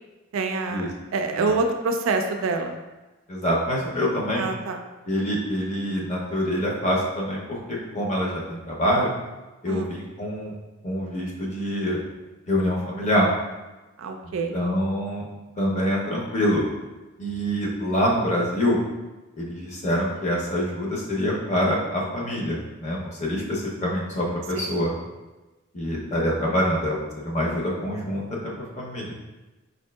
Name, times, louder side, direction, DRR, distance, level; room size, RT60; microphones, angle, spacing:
voice 1, 0.3-2.8 4.4-4.8 9.7-9.9 14.0-14.5 24.6-24.8, right 3 dB, 70° right, 5 dB, 0.3 m, -26 dB
voice 2, 3.3-4.5 5.1-9.1 9.6-10.5 10.8-12.0 12.5-13.3 14.5-15.3 15.6-16.6 17.2-18.8 19.4-24.9 25.7-27.0 27.2-29.1, equal, 35° left, -3 dB, 0.6 m, -25 dB
5.0 x 2.7 x 2.2 m, 1.1 s
head